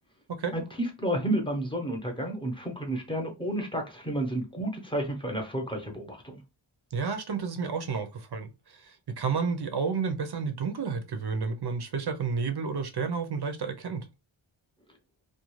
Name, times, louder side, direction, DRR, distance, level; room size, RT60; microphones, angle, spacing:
voice 1, 0.5-6.4, right 1 dB, 10° left, 0.8 m, -31 dB
voice 2, 6.9-14.1, right 5 dB, 55° right, 0.6 m, -31 dB
2.4 x 2.3 x 3.0 m
wide cardioid pair, 85°, 49 cm